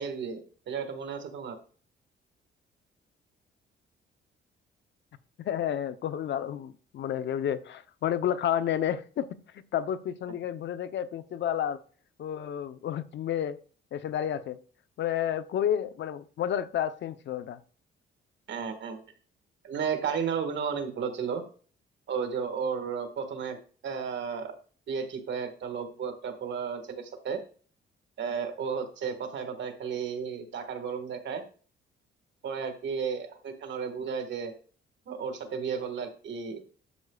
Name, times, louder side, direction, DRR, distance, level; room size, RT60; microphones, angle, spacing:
voice 1, 0.0-1.6 18.5-19.0 19.6-21.4 22.1-23.6 23.8-24.5 24.9-27.4 28.2-31.4 32.4-34.5 35.1-36.6, right 6 dB, 65° right, 1.7 m, -33 dB
voice 2, 5.4-9.3 9.5-11.8 12.2-13.6 13.9-14.6 15.0-17.6, left 10 dB, 65° left, 0.8 m, -30 dB
12.5 x 7.7 x 2.4 m
cardioid pair, 90°, 20 cm